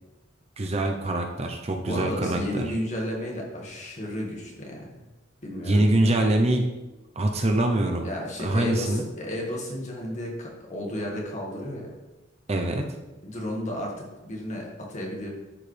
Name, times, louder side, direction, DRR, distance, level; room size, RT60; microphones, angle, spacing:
voice 1, 0.6-2.7 5.6-6.7 7.2-8.1 8.4-9.0 12.5-12.8, right 1 dB, 35° right, 3 dB, 0.6 m, -24 dB
voice 2, 1.8-5.0 5.4-6.1 8.0-11.9 13.2-15.3, left 1 dB, 40° left, -1 dB, 1.7 m, -33 dB
11.0 x 4.9 x 3.3 m, 1.1 s
head